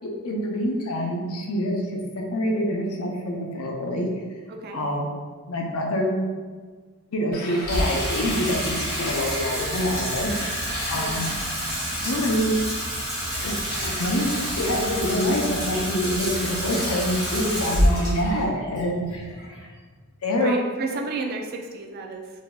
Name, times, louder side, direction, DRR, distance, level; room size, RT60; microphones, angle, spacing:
voice 1, 0.0-2.0 2.3-4.1 4.7-5.1 5.5-6.2 7.1-11.3 12.0-12.5 13.4-19.4 20.2-20.6 20.9-21.0, equal, 85° left, 0 dB, 0.6 m, -26 dB
voice 2, 4.5-4.8 10.9-11.3 20.3-22.3, right 3 dB, 45° right, 2 dB, 0.3 m, -33 dB
sound 1, 7.3-9.8 10.3-12.2 13.3-15.4 16.3-18.5, left 1 dB, 40° left, 0.6 m, -37 dB
Water tap faucet / Sink (filling or washing), 7.7-20.0, equal, 15° right, 1.4 m, -28 dB
4.0 x 2.6 x 2.2 m, 1.5 s
head